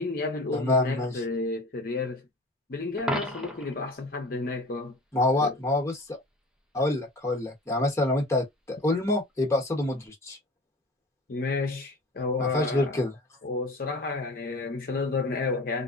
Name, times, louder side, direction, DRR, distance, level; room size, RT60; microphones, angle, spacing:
voice 1, 0.0-2.2 2.7-4.9 5.4-5.5 11.3-13.0 13.4-15.8, left 3 dB, 50° left, 0.6 m, -31 dB
voice 2, 0.5-1.2 5.1-6.2 6.7-10.4 12.4-13.1, left 2 dB, 15° left, 0.9 m, -26 dB
Coin (dropping), 3.0-3.8 9.9-10.1, equal, 5° right, 0.5 m, -33 dB
2.5 x 2.1 x 2.4 m
head